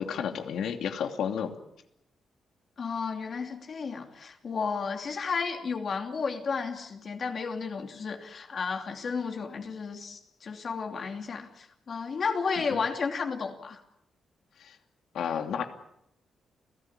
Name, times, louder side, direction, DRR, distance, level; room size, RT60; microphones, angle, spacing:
voice 1, 0.0-1.5 12.7-12.8 14.6-14.8 15.1-15.7, left 8 dB, 80° left, 5 dB, 2.7 m, -31 dB
voice 2, 2.8-13.8, left 5 dB, 40° left, 4 dB, 2.8 m, -33 dB
29.5 x 17.0 x 8.9 m, 0.78 s
wide cardioid pair, 170°, 0 cm